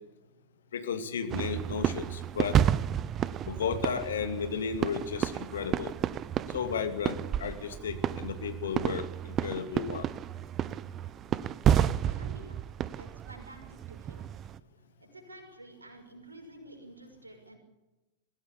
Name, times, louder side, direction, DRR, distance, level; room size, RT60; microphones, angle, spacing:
voice 1, 0.7-2.6 3.4-5.9 6.5-10.1, left 6 dB, 65° left, 8 dB, 2.4 m, -34 dB
sound 1, 1.3-14.6, right 10 dB, 30° right, 0.8 m, -31 dB
voice 2, 11.7-12.6 12.9-14.2 15.0-17.6, right 1 dB, 80° right, 4 dB, 5.9 m, -50 dB
22.0 x 16.0 x 8.5 m, 1.1 s
figure-of-eight pair, 90°, 0 cm